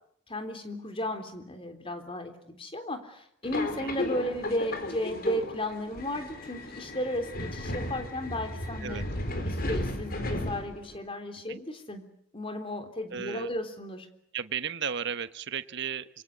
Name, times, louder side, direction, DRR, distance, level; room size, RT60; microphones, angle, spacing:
voice 1, 0.3-9.0 9.4-12.0 12.3-14.1, left 1 dB, 25° left, 8 dB, 3.6 m, -34 dB
Subway metro underground, 3.4-11.0, left 1 dB, 45° left, 4.1 m, -35 dB
voice 2, 13.1-13.5 14.3-16.2, right 7 dB, 55° right, 12 dB, 1.2 m, -34 dB
26.5 x 23.5 x 8.4 m, 0.72 s
head